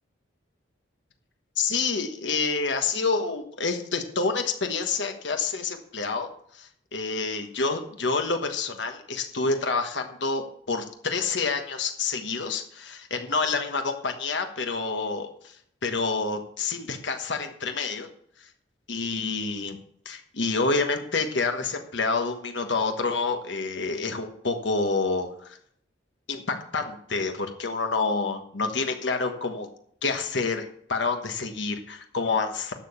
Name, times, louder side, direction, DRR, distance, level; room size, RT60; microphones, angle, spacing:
voice 1, 1.6-6.3 6.5-15.5 15.8-18.1 18.9-19.8 20.0-25.6 26.3-29.7 30.0-32.7, left 4 dB, 75° left, 5 dB, 1.3 m, -28 dB
11.5 x 6.9 x 7.0 m, 0.66 s
head